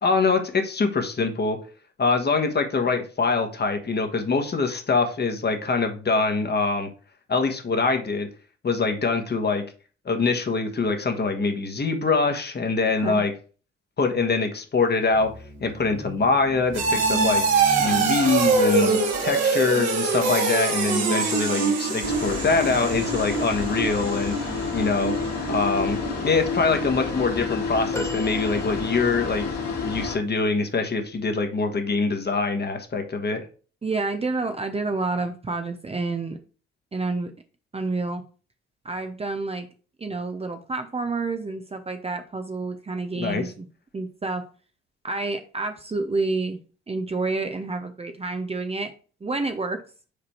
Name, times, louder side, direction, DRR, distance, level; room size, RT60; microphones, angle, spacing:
voice 1, 0.0-1.6 2.0-6.9 7.3-8.3 8.6-9.6 10.0-13.3 14.0-15.3 15.6-17.4 17.8-24.3 24.7-25.1 25.5-29.4 29.8-33.4 43.1-43.4, left 4 dB, 35° left, 5 dB, 1.4 m, -24 dB
sound 1, 15.1-27.8 28.1-28.5 28.9-29.0, right 4 dB, 60° right, 1.9 m, -25 dB
sound 2, 22.0-30.2, left 4 dB, 60° left, 2.2 m, -29 dB
sound 3, 27.9-29.3 30.1-30.2, equal, 10° left, 1.0 m, -37 dB
voice 2, 33.8-36.4 36.9-37.3 37.7-38.2 38.8-39.7 40.0-43.7 43.9-44.4 45.0-46.6 46.9-48.9 49.2-49.8, right 3 dB, 20° right, 7 dB, 0.7 m, -29 dB
5.2 x 4.1 x 4.5 m, 0.37 s
hypercardioid pair, 50°, 30 cm